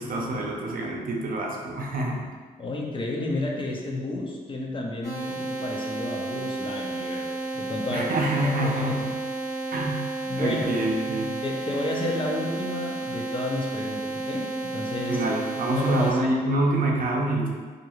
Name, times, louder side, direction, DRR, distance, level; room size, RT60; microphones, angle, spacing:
voice 1, 0.0-2.2 7.9-9.2 9.7-10.0 10.4-11.3 15.1-17.5, right 1 dB, 55° right, -1 dB, 0.6 m, -26 dB
voice 2, 2.6-7.3 7.5-8.1 8.4-9.0 10.2-10.7 11.4-15.2 15.7-16.3, left 2 dB, 30° left, -1 dB, 0.6 m, -31 dB
sound 1, 5.0-16.1, right 2 dB, 80° left, 1.1 m, -32 dB
2.4 x 2.2 x 3.0 m, 1.5 s
supercardioid pair, 55°, 18 cm